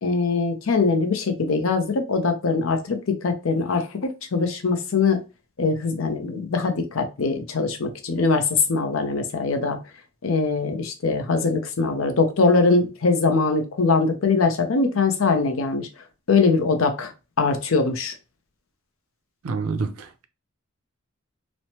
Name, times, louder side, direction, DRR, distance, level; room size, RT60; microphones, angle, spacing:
voice 1, 0.0-5.2 5.6-9.8 10.2-15.9 16.3-17.1 17.4-18.1, left 4 dB, 75° left, 0.6 m, -22 dB
voice 2, 19.4-20.3, right 4 dB, 90° right, 0.5 m, -28 dB
3.1 x 2.1 x 2.8 m
head